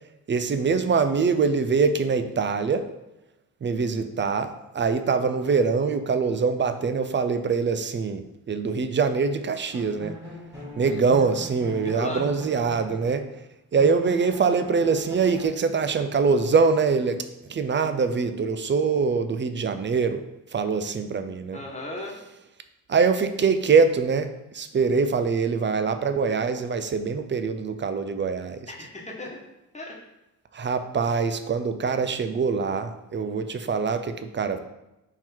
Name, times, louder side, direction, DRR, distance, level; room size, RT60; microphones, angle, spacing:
voice 1, 0.3-2.9 3.6-10.2 10.8-13.3 13.7-20.2 20.5-21.6 22.9-28.7 30.5-34.6, right 5 dB, 30° right, 10 dB, 0.4 m, -24 dB
sound 1, 9.7-13.4 13.8-15.5, left 1 dB, 10° right, 1.6 m, -41 dB
voice 2, 11.8-12.3 21.5-22.1 28.7-29.4 29.7-30.0, left 1 dB, 20° left, -2 dB, 1.3 m, -36 dB
3.8 x 3.0 x 4.4 m, 0.95 s
supercardioid pair, 55°, 37 cm